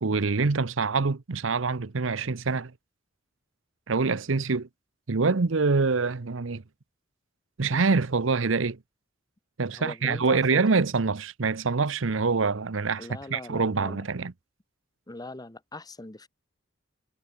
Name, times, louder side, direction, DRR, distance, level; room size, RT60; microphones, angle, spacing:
voice 1, 0.0-2.7 3.9-4.7 5.1-6.6 7.6-8.8 9.6-14.3, right 4 dB, 70° right, 0.8 m, -25 dB
voice 2, 9.7-10.6 13.0-14.0 15.1-16.3, left 2 dB, 20° left, 1.2 m, -41 dB
head